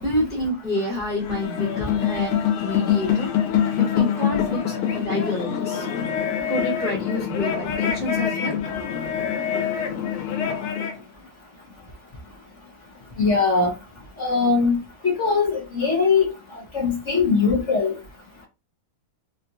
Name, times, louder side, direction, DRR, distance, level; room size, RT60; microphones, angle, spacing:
voice 1, 0.0-2.3 2.6-3.3 3.8-5.8 6.5-8.5, left 1 dB, ahead, 1.0 m, -28 dB
sound 1, 1.1-11.0, left 8 dB, 85° left, 1.7 m, -25 dB
voice 2, 13.2-13.7 14.2-14.8 15.0-16.3 16.7-17.9, left 4 dB, 55° left, 0.8 m, -20 dB
3.7 x 2.4 x 2.7 m
omnidirectional pair, 2.3 m